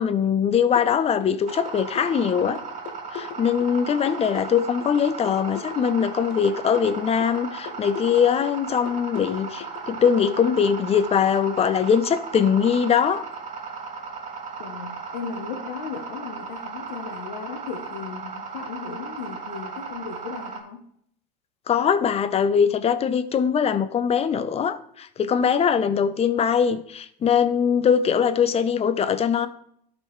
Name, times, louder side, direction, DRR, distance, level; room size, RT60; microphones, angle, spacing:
voice 1, 0.0-2.6 3.1-13.3 21.7-29.5, left 7 dB, 30° left, 12 dB, 0.6 m, -22 dB
sound 1, 0.8-10.1, left 9 dB, 65° left, 1.1 m, -39 dB
sound 2, 1.5-20.6, right 5 dB, 35° right, 2.8 m, -36 dB
voice 2, 14.6-20.8, left 6 dB, 85° left, 4 dB, 1.0 m, -36 dB
12.5 x 5.2 x 3.1 m, 0.68 s
supercardioid pair, 100°, 21 cm